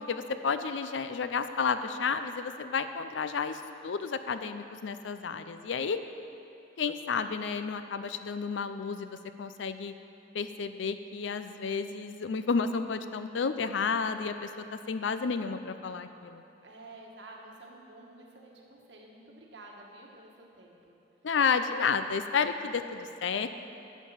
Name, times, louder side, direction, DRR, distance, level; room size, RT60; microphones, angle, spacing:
voice 1, 0.0-6.0 6.8-9.9 10.3-16.4 21.2-23.5, left 5 dB, 85° left, 10 dB, 0.5 m, -31 dB
voice 2, 16.6-21.0, right 2 dB, 70° right, -1 dB, 1.5 m, -50 dB
10.5 x 7.3 x 5.7 m, 2.7 s
head